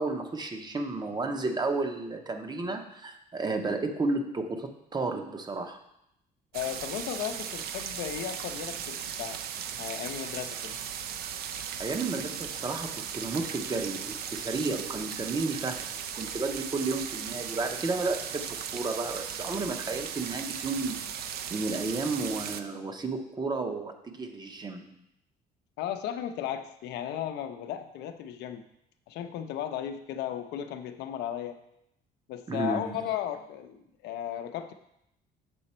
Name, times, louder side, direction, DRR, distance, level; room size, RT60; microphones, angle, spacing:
voice 1, 0.0-5.8 11.8-15.9 16.1-25.0 32.5-33.1, right 3 dB, 25° right, 6 dB, 0.7 m, -32 dB
voice 2, 6.5-9.4 9.8-10.8 25.8-28.6 29.1-31.6 32.3-34.7, left 10 dB, 80° left, 7 dB, 0.6 m, -35 dB
sound 1, 6.5-22.6, right 8 dB, 70° right, 0.5 m, -37 dB
7.0 x 4.0 x 4.3 m, 0.79 s
cardioid pair, 110°, 17 cm